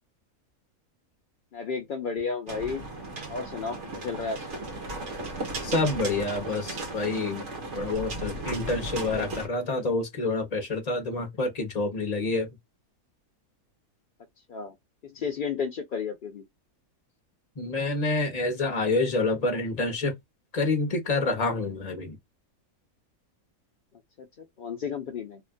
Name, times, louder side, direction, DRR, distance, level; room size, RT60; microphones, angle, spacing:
voice 1, 1.5-2.8 3.3-4.6 14.5-14.7 15.1-16.4 24.2-24.3 24.6-25.4, left 5 dB, 55° left, 0.6 m, -32 dB
sound 1, 2.5-9.5, right 2 dB, 55° right, 1.3 m, -36 dB
voice 2, 5.6-7.5 7.8-12.5 17.6-20.1 20.5-22.2, left 3 dB, 30° left, 0.9 m, -28 dB
2.9 x 2.4 x 2.3 m
omnidirectional pair, 1.5 m